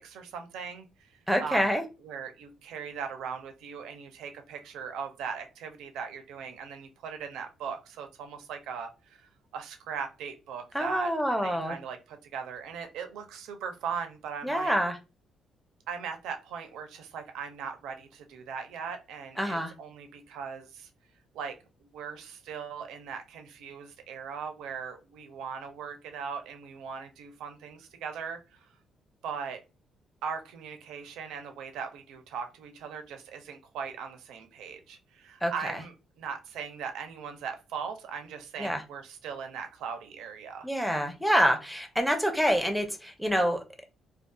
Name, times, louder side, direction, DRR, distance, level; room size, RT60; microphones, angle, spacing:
voice 1, 0.0-1.8 2.0-11.1 11.4-14.7 15.9-20.9 21.3-28.7 29.2-29.6 30.2-35.9 36.2-40.7, right 6 dB, 90° right, 6 dB, 0.5 m, -39 dB
voice 2, 1.3-1.8 10.7-11.8 14.4-15.0 19.4-19.7 35.4-35.7 38.6-38.8 40.6-43.6, equal, ahead, 5 dB, 0.6 m, -26 dB
2.6 x 2.3 x 2.2 m, 0.28 s
cardioid pair, 90°, 0 cm